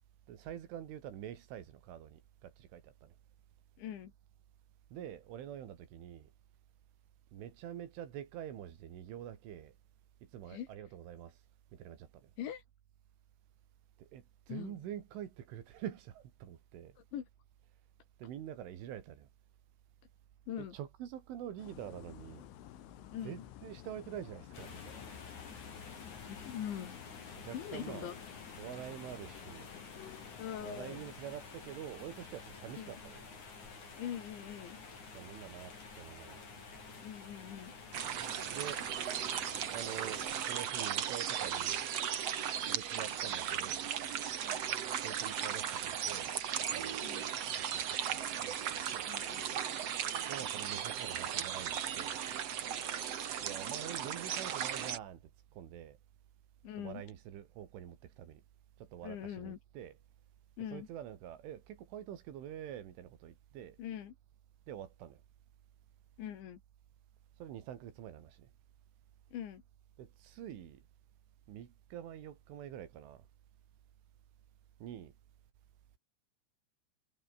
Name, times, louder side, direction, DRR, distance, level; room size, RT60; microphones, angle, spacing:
voice 1, 0.3-3.1 4.9-6.3 7.3-9.8 10.2-11.4 11.7-12.3 14.0-17.0 18.2-19.3 20.7-22.5 23.2-25.0 27.4-28.1 28.6-29.7 30.6-33.2 35.1-36.4 38.5-38.8 39.7-41.8 42.7-43.9 45.0-46.3 46.7-47.0 47.6-49.1 50.3-52.2 53.4-55.2 55.5-56.0 56.8-58.4 58.8-59.9 60.7-63.8 64.7-65.2 67.4-68.5 70.0-70.8 71.5-73.3 74.8-75.1, right 10 dB, 85° right, 5.0 m, -46 dB
voice 2, 3.8-4.1 10.5-10.7 12.4-12.6 14.5-14.8 17.0-17.3 20.5-20.8 23.1-23.4 26.3-27.0 27.5-28.2 30.4-31.0 32.8-33.0 34.0-34.8 37.0-37.7 44.4-44.6 47.0-47.3 49.1-49.5 56.6-57.0 59.0-59.6 60.6-60.9 63.8-64.1 66.2-66.6 69.3-69.6, left 10 dB, 75° left, 4.8 m, -42 dB
sound 1, 21.6-31.2, left 14 dB, 90° left, 4.0 m, -53 dB
sound 2, 24.5-40.5, left 4 dB, 40° left, 6.3 m, -50 dB
sound 3, 37.9-55.0, right 9 dB, 60° right, 1.7 m, -36 dB
omnidirectional pair, 5.4 m